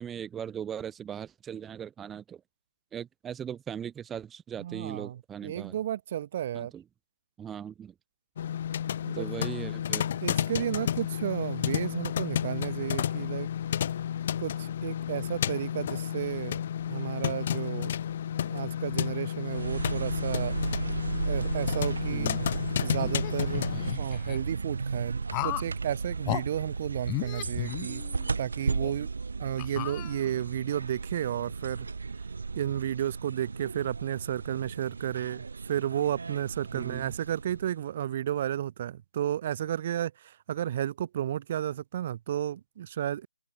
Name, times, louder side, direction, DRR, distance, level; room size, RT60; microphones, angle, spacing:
voice 1, 0.0-2.4 2.9-5.7 6.5-6.8 7.4-7.9 9.1-10.2 22.1-22.5 36.7-37.1, right 8 dB, 5° right, 4.9 m, -39 dB
voice 2, 4.6-6.7 9.0-9.3 10.2-13.5 14.4-16.6 16.9-17.9 18.4-20.6 21.2-22.3 22.8-23.7 24.0-28.0 28.4-29.1 29.4-31.9 32.5-43.3, right 11 dB, 25° right, 3.1 m, -32 dB
sound 1, 8.4-23.9, left 9 dB, 30° left, 3.0 m, -31 dB
sound 2, 19.4-37.9, right 4 dB, 60° right, 5.9 m, -35 dB
sound 3, 22.9-24.4 25.3-25.7 26.2-26.4 27.0-28.3 28.8-28.9 29.6-30.5, left 29 dB, 15° left, 2.6 m, -35 dB
open air
figure-of-eight pair, 160°, 0 cm